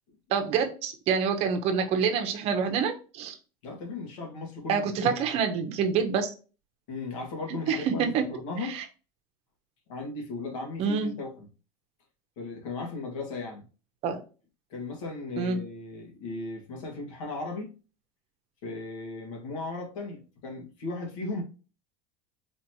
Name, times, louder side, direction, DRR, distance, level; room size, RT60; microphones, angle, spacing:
voice 1, 0.3-3.4 4.7-6.3 7.7-8.2 8.7-8.8 10.8-11.1 14.0-14.2 15.4-15.6, right 6 dB, 40° right, 0.8 m, -27 dB
voice 2, 3.6-5.3 6.9-8.8 9.9-11.5 12.4-13.6 14.7-17.7 18.6-21.4, left 3 dB, 80° left, 1.6 m, -36 dB
4.3 x 3.0 x 2.7 m
supercardioid pair, 160°, 16 cm